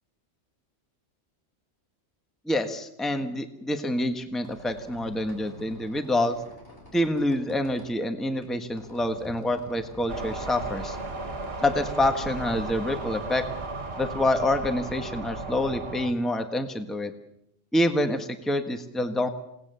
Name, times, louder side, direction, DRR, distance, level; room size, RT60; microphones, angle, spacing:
voice 1, 2.5-6.4 6.9-11.0 11.6-13.4 14.0-17.1 17.7-19.3, left 1 dB, ahead, 6 dB, 1.4 m, -27 dB
Squeak, 4.1-13.7, left 1 dB, 50° left, 4.5 m, -48 dB
sound 1, 10.1-16.1, right 3 dB, 55° right, 2.0 m, -35 dB
29.0 x 18.5 x 6.9 m, 0.81 s
omnidirectional pair, 1.3 m